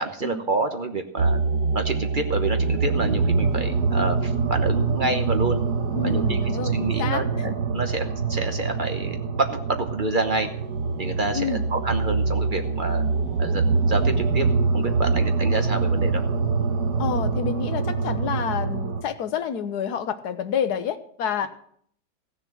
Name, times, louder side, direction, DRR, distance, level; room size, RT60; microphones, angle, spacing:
voice 1, 0.0-1.4 1.7-5.6 6.0-10.5 11.0-13.0 13.4-14.5 14.7-16.2, right 2 dB, 35° right, 6 dB, 0.9 m, -28 dB
sound 1, 1.2-19.0, right 4 dB, 65° right, 1.8 m, -24 dB
voice 2, 5.9-7.5 11.3-11.6 17.0-21.5, left 7 dB, 70° left, 10 dB, 1.4 m, -28 dB
15.5 x 6.7 x 7.6 m, 0.64 s
omnidirectional pair, 1.8 m